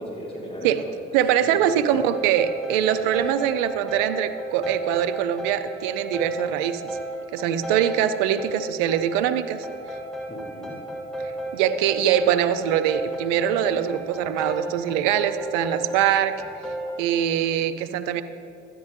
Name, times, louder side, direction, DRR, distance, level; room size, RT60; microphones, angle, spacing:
voice 1, 0.0-1.9 10.3-10.8, equal, 20° left, -3 dB, 2.4 m, -36 dB
voice 2, 1.1-7.0 7.3-9.7 11.5-16.4 17.0-18.2, right 10 dB, 90° right, 10 dB, 0.5 m, -23 dB
sound 1, 1.9-17.0, right 1 dB, ahead, 2.9 m, -34 dB
12.5 x 9.8 x 3.6 m, 2.6 s
hypercardioid pair, 50°, 30 cm